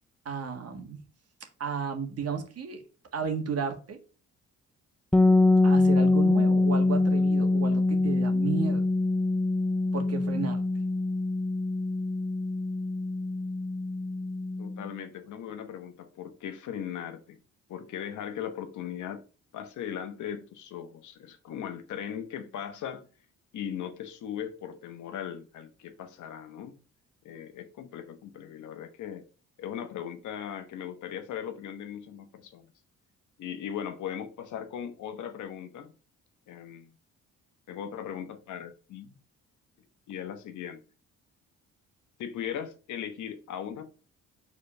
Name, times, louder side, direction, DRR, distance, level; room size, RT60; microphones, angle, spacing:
voice 1, 0.2-1.0 1.4-2.8 3.1-4.0 5.6-8.9 9.9-10.6, right 5 dB, 55° right, 1.6 m, -33 dB
sound 1, 5.1-14.9, left 2 dB, 5° left, 0.3 m, -24 dB
voice 2, 14.6-17.4 17.7-19.2 19.5-23.0 23.5-26.8 27.2-29.3 29.6-32.6 33.4-35.9 36.5-36.9 37.7-39.2 40.1-40.8 42.2-43.8, left 9 dB, 75° left, 1.1 m, -38 dB
5.0 x 4.1 x 5.4 m
cardioid pair, 90°, 30 cm